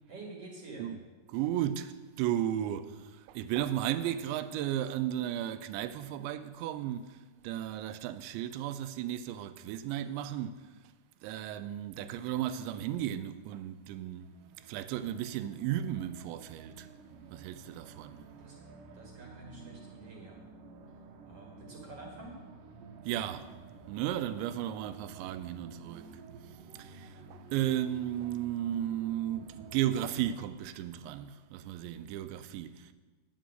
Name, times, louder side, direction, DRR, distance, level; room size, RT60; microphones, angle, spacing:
voice 1, 0.1-0.9 18.4-18.6 18.9-20.4 21.2-22.4, right 2 dB, 50° right, 1.9 m, -48 dB
voice 2, 1.3-10.7 11.2-14.3 14.6-16.9 17.3-18.2 23.1-23.5 23.9-26.1 26.8-32.9, right 11 dB, 90° right, 3.0 m, -34 dB
sound 1, 14.2-30.4, right 4 dB, 70° right, 2.2 m, -52 dB
9.7 x 9.1 x 7.7 m
omnidirectional pair, 5.1 m